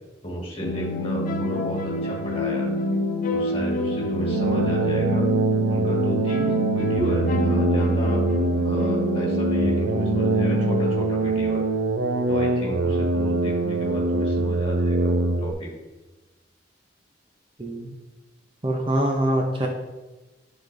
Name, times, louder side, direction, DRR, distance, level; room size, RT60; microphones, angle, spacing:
voice 1, 0.2-2.7 3.3-5.2 5.7-8.2 8.6-11.6 12.3-15.7, right 1 dB, 30° left, -3 dB, 1.7 m, -33 dB
sound 1, 0.6-10.9, left 2 dB, 45° left, 0.5 m, -27 dB
sound 2, 4.2-15.5, right 2 dB, 90° right, 0.5 m, -23 dB
voice 2, 17.6-17.9 18.6-19.7, right 1 dB, 30° right, 1 dB, 0.7 m, -24 dB
10.0 x 3.9 x 2.6 m, 1.1 s
head